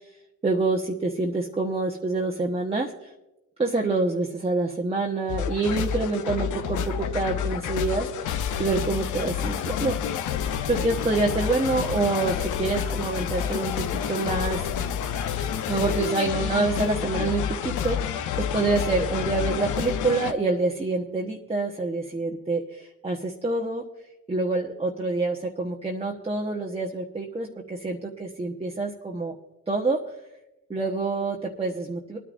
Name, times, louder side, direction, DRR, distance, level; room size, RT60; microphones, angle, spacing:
voice 1, 0.4-2.9 3.6-8.3 8.6-10.0 10.7-14.7 15.7-23.8 24.3-29.4 29.7-30.0 30.7-32.2, right 3 dB, 20° right, -1 dB, 1.2 m, -27 dB
sound 1, 5.3-20.3, left 8 dB, 80° left, 0.8 m, -29 dB
26.5 x 10.0 x 2.6 m, 0.96 s
cardioid pair, 90°, 30 cm